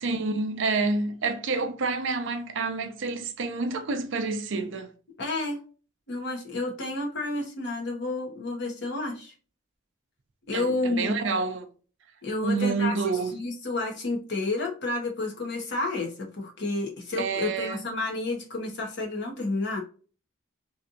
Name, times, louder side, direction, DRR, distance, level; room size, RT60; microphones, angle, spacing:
voice 1, 0.0-4.9 10.5-11.7 12.4-13.3 17.2-17.8, right 4 dB, 60° right, 0.5 m, -28 dB
voice 2, 5.2-5.6 6.1-9.3 10.5-11.2 12.2-12.9 13.3-19.8, left 2 dB, 55° left, 1.2 m, -30 dB
3.3 x 2.7 x 2.5 m
head